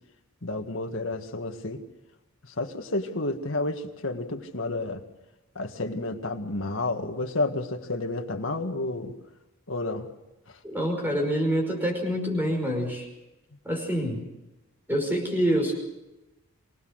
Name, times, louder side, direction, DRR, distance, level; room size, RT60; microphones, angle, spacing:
voice 1, 0.4-1.8 2.4-5.0 5.6-9.1 9.7-10.1, left 2 dB, 60° left, 5 dB, 1.8 m, -30 dB
voice 2, 10.6-13.1 13.7-14.3 14.9-15.7, equal, 10° right, 2 dB, 5.4 m, -26 dB
25.0 x 18.5 x 6.5 m, 0.99 s
head